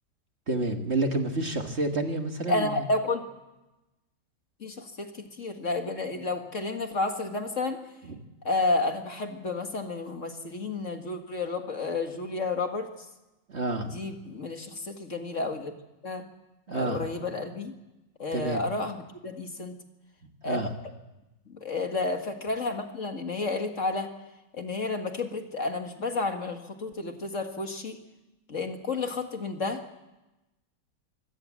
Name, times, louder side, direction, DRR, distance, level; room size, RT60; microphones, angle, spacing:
voice 1, 0.5-2.9 8.0-8.2 13.5-13.9 16.7-17.0 18.3-18.6 20.4-20.7, right 2 dB, 40° right, 5 dB, 1.8 m, -29 dB
voice 2, 2.5-3.2 4.6-7.8 8.4-12.9 13.8-15.7 16.0-16.2 16.7-17.7 18.2-19.7 20.4-20.6 21.5-24.1 24.5-28.0 28.5-29.8, left 3 dB, 45° left, 5 dB, 2.0 m, -31 dB
25.0 x 17.0 x 7.5 m, 1.0 s
omnidirectional pair, 1.9 m